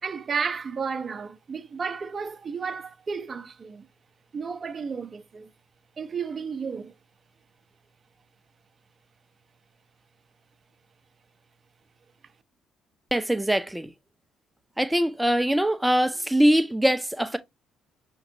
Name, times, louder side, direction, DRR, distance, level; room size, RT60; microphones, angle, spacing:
voice 1, 0.0-3.9 4.3-5.5 6.0-6.9, right 5 dB, 40° right, 0.7 m, -32 dB
voice 2, 13.1-13.9 14.8-17.4, equal, 10° right, 0.7 m, -22 dB
5.8 x 2.9 x 2.7 m
hypercardioid pair, 50°, 0 cm